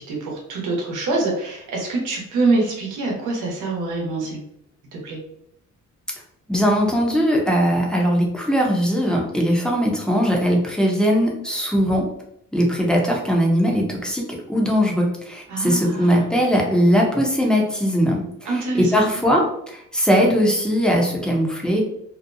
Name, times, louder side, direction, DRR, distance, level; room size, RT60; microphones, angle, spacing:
voice 1, 0.0-4.4 4.9-5.2 15.5-16.3 18.4-19.1, right 3 dB, 85° right, -1 dB, 0.9 m, -25 dB
voice 2, 6.5-12.1 12.5-21.8, equal, 5° left, -1 dB, 0.6 m, -20 dB
2.7 x 2.0 x 2.5 m, 0.75 s
cardioid pair, 90°, 30 cm